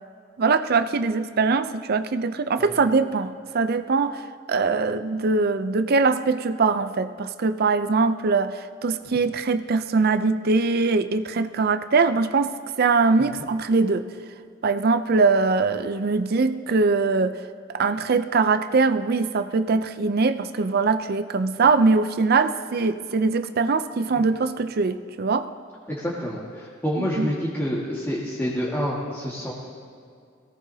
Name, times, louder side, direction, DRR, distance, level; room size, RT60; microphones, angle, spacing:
voice 1, 0.4-14.1 14.6-17.4 17.7-25.5 27.0-27.3, right 4 dB, 50° right, 11 dB, 0.5 m, -22 dB
voice 2, 25.9-29.5, equal, 10° left, -6 dB, 1.7 m, -28 dB
22.0 x 17.0 x 2.8 m, 2.3 s
head